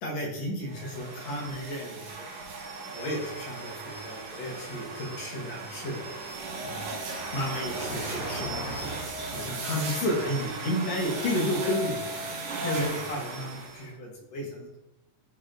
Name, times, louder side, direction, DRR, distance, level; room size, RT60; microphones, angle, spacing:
voice 1, 0.0-2.2 2.9-6.0 6.6-9.0 9.3-12.3 12.6-14.8, left 1 dB, 65° left, -1 dB, 2.1 m, -32 dB
sound 1, 0.7-13.9, right 3 dB, 85° right, 2.5 m, -37 dB
Car passing by / Engine, 3.2-13.8, right 1 dB, 45° left, 0.8 m, -44 dB
9.8 x 4.2 x 2.5 m, 0.91 s
omnidirectional pair, 3.5 m